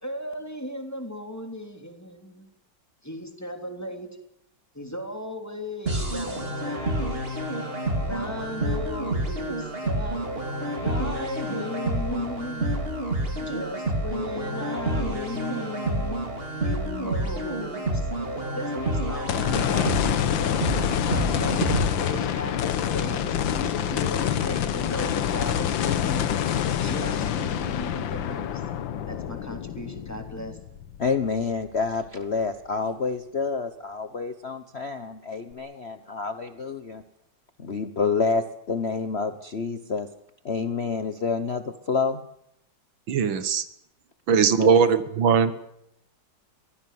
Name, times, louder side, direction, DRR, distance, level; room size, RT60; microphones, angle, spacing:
voice 1, 0.0-2.5 3.0-4.2 4.7-7.5 8.0-10.2 10.7-12.8 13.3-16.2 16.5-26.5 26.8-28.6 29.1-30.6, left 1 dB, 10° left, 5 dB, 3.2 m, -36 dB
sound 1, 5.9-21.9, right 1 dB, 30° right, 3.4 m, -29 dB
sound 2, 19.3-31.6 32.1-32.2 35.5-35.6, left 9 dB, 70° left, 1.8 m, -26 dB
voice 2, 31.0-37.0 37.6-40.1 40.4-42.2 44.6-44.8, left 4 dB, 40° left, 9 dB, 1.1 m, -28 dB
voice 3, 43.1-43.7 44.3-45.5, right 6 dB, 75° right, 13 dB, 2.0 m, -20 dB
23.5 x 16.0 x 9.5 m, 0.77 s
omnidirectional pair, 2.2 m